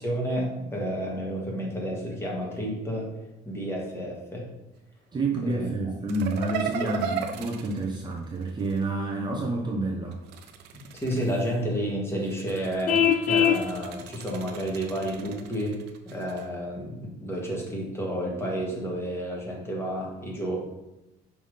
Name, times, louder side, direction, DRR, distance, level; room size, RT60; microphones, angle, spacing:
voice 1, 0.0-3.1 3.4-4.5 5.4-5.7 6.8-6.9 10.9-15.8 16.1-20.6, equal, 15° left, -2 dB, 1.9 m, -31 dB
voice 2, 5.1-10.2, right 2 dB, 25° right, -1 dB, 0.9 m, -29 dB
sound 1, 6.1-8.8 10.1-11.6 12.2-16.4, right 7 dB, 85° right, 0.7 m, -37 dB
Vehicle horn car horn honking, 12.9-13.7, left 8 dB, 50° left, 0.5 m, -21 dB
5.7 x 3.7 x 5.0 m, 0.93 s
cardioid pair, 110°, 17 cm